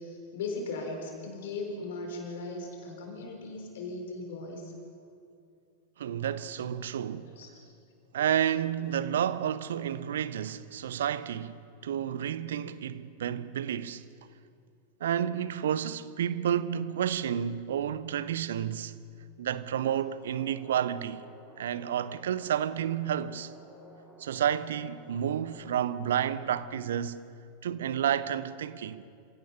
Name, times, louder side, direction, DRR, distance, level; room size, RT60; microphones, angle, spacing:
voice 1, 0.0-4.7 7.1-7.5, left 3 dB, 55° left, 4.3 m, -38 dB
voice 2, 6.0-7.3 8.1-14.0 15.0-18.9 19.4-21.2 21.6-23.5 24.2-27.2 27.6-29.1, right 9 dB, 60° right, 0.7 m, -30 dB
sound 1, 20.1-26.5, equal, 20° right, 6.7 m, -54 dB
27.5 x 16.5 x 5.7 m
figure-of-eight pair, 90°, 0 cm